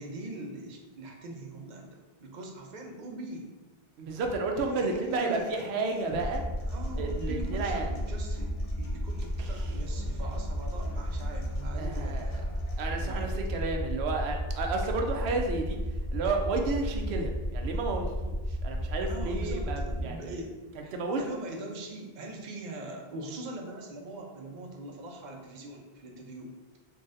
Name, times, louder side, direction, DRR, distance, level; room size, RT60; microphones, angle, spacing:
voice 1, 0.0-3.5 4.8-5.6 6.7-12.2 12.9-13.4 19.1-26.8, right 2 dB, 50° right, 2 dB, 0.7 m, -42 dB
voice 2, 4.0-6.4 7.0-7.9 9.4-9.5 11.8-12.4 12.8-15.8 16.1-20.4 20.9-21.2, right 3 dB, 85° right, 3 dB, 0.8 m, -32 dB
Human voice / Acoustic guitar, 4.8-12.8, left 2 dB, 45° left, 0.5 m, -51 dB
sound 1, 6.1-20.1, equal, 15° right, 0.7 m, -33 dB
3.9 x 3.2 x 2.5 m, 1.2 s
omnidirectional pair, 1.1 m